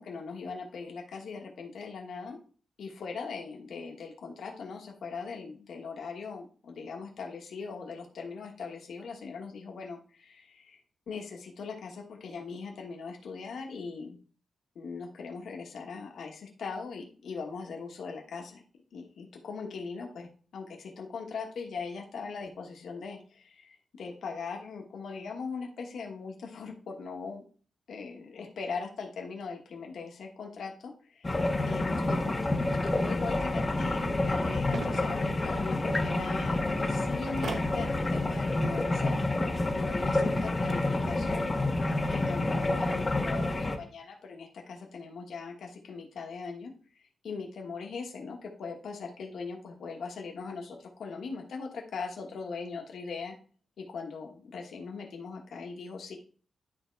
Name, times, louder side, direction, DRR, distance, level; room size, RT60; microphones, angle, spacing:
voice 1, 0.0-2.4 2.8-10.8 11.1-14.2 14.7-18.6 18.9-27.4 27.9-32.3 32.6-41.5 42.0-46.7 47.2-53.3 53.8-56.2, left 5 dB, 70° left, 1 dB, 1.3 m, -40 dB
water pump sewer water stream, 31.2-43.8, left 2 dB, 20° left, 0.9 m, -28 dB
sound 1, 34.5-35.2 37.4-37.8 40.4-40.9, right 4 dB, 60° right, 1.0 m, -39 dB
10.5 x 3.6 x 4.6 m, 0.42 s
wide cardioid pair, 175°, 0 cm